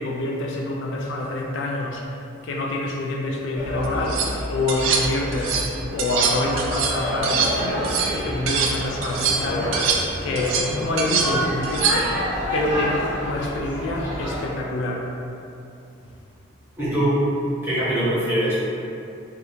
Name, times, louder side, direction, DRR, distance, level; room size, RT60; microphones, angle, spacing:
voice 1, 0.0-2.1 2.4-5.6 5.9-15.1 16.0-16.1, left 2 dB, 70° left, -1 dB, 0.3 m, -27 dB
sound 1, 3.5-14.4, equal, 55° left, 0.7 m, -29 dB
sound 2, 3.8-4.3 4.7-5.7 6.0-8.8 9.0-12.2, right 6 dB, 85° right, 0.4 m, -24 dB
voice 2, 16.8-17.2 17.6-18.6, right 1 dB, 10° right, -12 dB, 0.9 m, -22 dB
2.7 x 2.3 x 3.4 m, 2.6 s
head